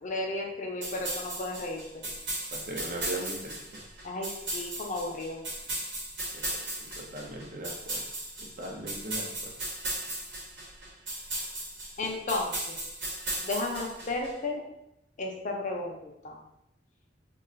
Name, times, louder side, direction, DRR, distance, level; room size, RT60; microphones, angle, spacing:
voice 1, 0.0-2.0 4.0-5.4 12.0-12.7 13.4-14.6 15.2-16.4, left 2 dB, 45° left, 0 dB, 0.5 m, -33 dB
sound 1, 0.8-14.3, right 1 dB, 70° right, 1.0 m, -36 dB
voice 2, 2.5-3.8 6.2-8.0 8.4-9.5, right 1 dB, 50° right, 0 dB, 0.6 m, -39 dB
2.4 x 2.3 x 3.8 m, 0.85 s
head